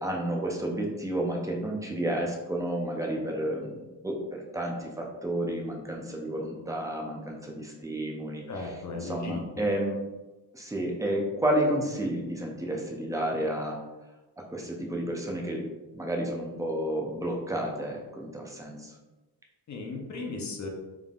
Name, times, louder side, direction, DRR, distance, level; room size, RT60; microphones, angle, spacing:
voice 1, 0.0-8.7 9.0-10.0 10.5-13.8 14.5-15.6 15.9-18.9, right 1 dB, 10° right, 0 dB, 0.5 m, -31 dB
voice 2, 8.5-9.6 19.7-20.7, left 3 dB, 45° left, 0 dB, 0.8 m, -36 dB
3.8 x 3.5 x 2.4 m, 1.1 s
wide cardioid pair, 140°, 39 cm